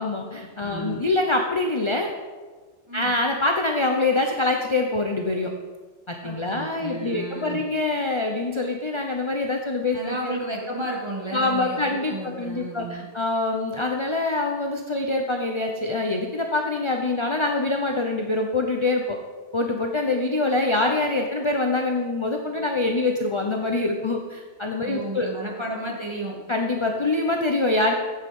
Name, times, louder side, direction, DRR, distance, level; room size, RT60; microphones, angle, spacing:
voice 1, 0.0-2.1 2.9-5.5 6.1-10.4 11.3-19.2 19.5-25.3 26.5-27.9, left 2 dB, 25° left, 2 dB, 0.9 m, -25 dB
voice 2, 0.6-1.0 2.9-3.1 6.2-7.6 9.9-13.1 24.8-26.4, right 1 dB, 20° right, -3 dB, 2.8 m, -33 dB
14.5 x 8.9 x 5.5 m, 1.4 s
omnidirectional pair, 1.2 m